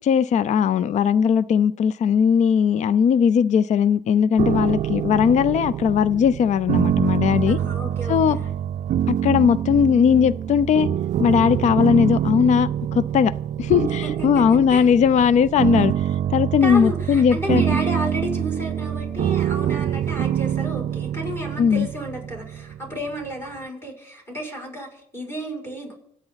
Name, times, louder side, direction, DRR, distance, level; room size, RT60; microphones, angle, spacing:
voice 1, 0.0-7.6 8.1-8.4 9.1-10.9 11.2-13.3 13.6-17.6 21.6-21.9, left 7 dB, 45° left, 18 dB, 0.5 m, -19 dB
sound 1, 4.4-23.3, right 10 dB, 45° right, 0.4 m, -25 dB
voice 2, 7.5-8.5 14.0-14.4 14.7-14.9 16.6-25.9, equal, 15° left, -1 dB, 6.1 m, -32 dB
25.0 x 8.8 x 4.0 m, 0.71 s
cardioid pair, 110°, 17 cm